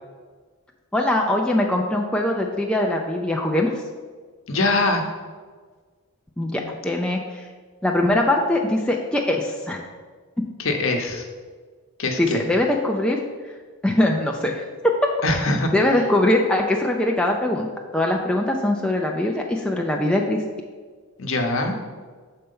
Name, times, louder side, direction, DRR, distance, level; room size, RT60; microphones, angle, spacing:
voice 1, 0.9-3.7 6.4-7.4 7.8-9.8 10.4-10.5 12.2-13.2 13.8-14.6 15.7-17.7 17.9-20.4, left 1 dB, 5° left, 0 dB, 0.4 m, -22 dB
voice 2, 4.5-5.0 10.6-11.3 12.0-12.4 15.2-15.7 21.2-21.8, left 2 dB, 60° left, 3 dB, 0.9 m, -22 dB
6.5 x 4.3 x 5.4 m, 1.5 s
head